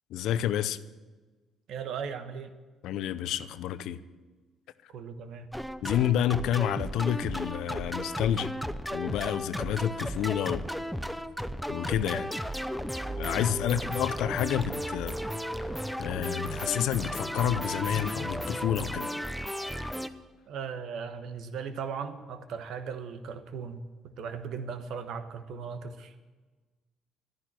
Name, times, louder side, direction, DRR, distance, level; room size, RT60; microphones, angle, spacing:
voice 1, 0.1-0.8 2.8-4.0 5.8-8.5 8.9-10.6 11.7-12.3 13.2-15.2 16.0-19.1, left 10 dB, 80° left, 0.6 m, -29 dB
voice 2, 1.7-2.6 4.9-5.5 13.6-13.8 20.5-23.8 24.1-26.1, right 6 dB, 75° right, 1.2 m, -38 dB
sound 1, 5.5-20.1, equal, ahead, 0.7 m, -34 dB
11.0 x 10.5 x 8.9 m
cardioid pair, 80°, 0 cm